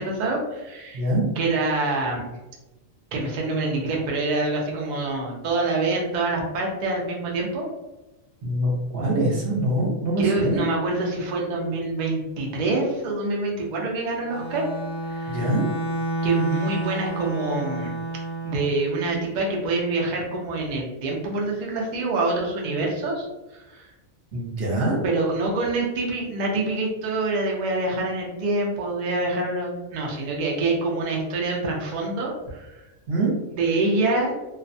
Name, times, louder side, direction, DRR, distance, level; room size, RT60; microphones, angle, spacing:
voice 1, 0.0-1.0 1.4-2.3 3.1-7.7 10.2-14.6 15.1-15.5 16.2-17.9 18.4-23.3 23.7-23.9 25.0-32.7 33.6-34.3, right 2 dB, 80° right, -1 dB, 0.4 m, -26 dB
voice 2, 0.9-1.2 8.4-10.6 15.3-15.7 24.3-25.0 33.1-33.3, right 1 dB, 55° right, -3 dB, 0.9 m, -24 dB
Bowed string instrument, 14.2-18.8, right 1 dB, 70° left, 0.8 m, -30 dB
2.4 x 2.1 x 2.6 m, 1.0 s
omnidirectional pair, 1.4 m